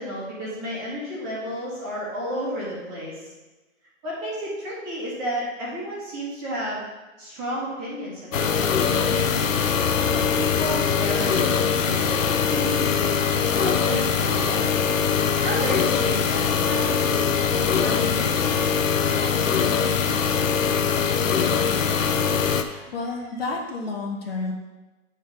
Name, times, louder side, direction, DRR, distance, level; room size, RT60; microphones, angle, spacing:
voice 1, 0.0-3.3 4.0-6.8 7.2-9.5 10.0-14.7 15.4-18.6 19.0-19.8, equal, 15° right, -6 dB, 1.6 m, -32 dB
sound 1, 8.3-22.6, left 6 dB, 70° left, 0.8 m, -22 dB
voice 2, 22.7-24.5, left 3 dB, 45° left, 0 dB, 1.3 m, -30 dB
9.0 x 4.5 x 5.2 m, 1.2 s
hypercardioid pair, 170°, 40 cm